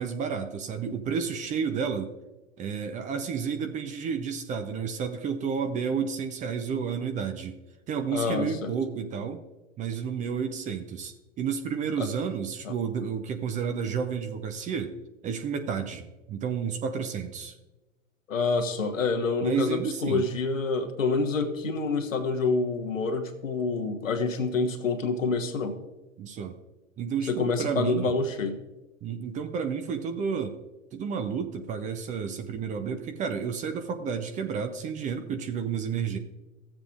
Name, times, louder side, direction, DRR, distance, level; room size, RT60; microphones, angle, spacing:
voice 1, 0.0-2.1 2.6-7.5 7.9-9.4 9.8-15.0 15.2-17.6 19.4-20.2 26.2-26.6 27.0-28.1 29.0-30.6 30.9-36.2, right 6 dB, 20° right, 7 dB, 0.6 m, -31 dB
voice 2, 8.1-8.7 12.0-12.1 12.6-12.7 18.3-25.8 27.3-28.6, left 4 dB, 75° left, 5 dB, 1.3 m, -27 dB
15.5 x 7.4 x 2.5 m, 1.1 s
figure-of-eight pair, 105°, 39 cm